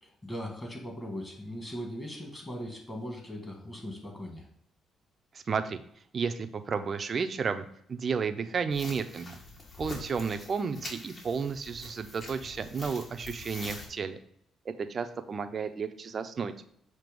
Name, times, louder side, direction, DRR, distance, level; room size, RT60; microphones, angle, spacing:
voice 1, 0.0-4.5, equal, 20° left, 1 dB, 1.9 m, -39 dB
voice 2, 5.3-5.8 6.1-9.4 9.8-14.2 14.7-16.5, right 5 dB, 45° right, 8 dB, 0.6 m, -32 dB
sound 1, 8.7-13.9, left 2 dB, 45° left, 1.9 m, -45 dB
7.6 x 2.9 x 5.3 m, 0.70 s
cardioid pair, 90°, 0 cm